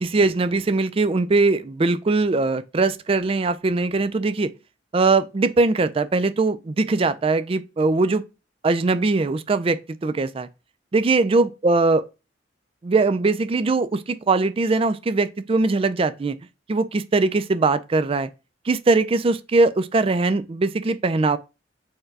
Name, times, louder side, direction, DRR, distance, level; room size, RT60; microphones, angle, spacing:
voice 1, 0.0-4.5 4.9-8.2 8.6-10.5 10.9-12.0 12.8-16.4 16.7-18.3 18.7-21.4, right 3 dB, 30° right, 0.4 m, -21 dB
4.6 x 2.2 x 4.6 m
head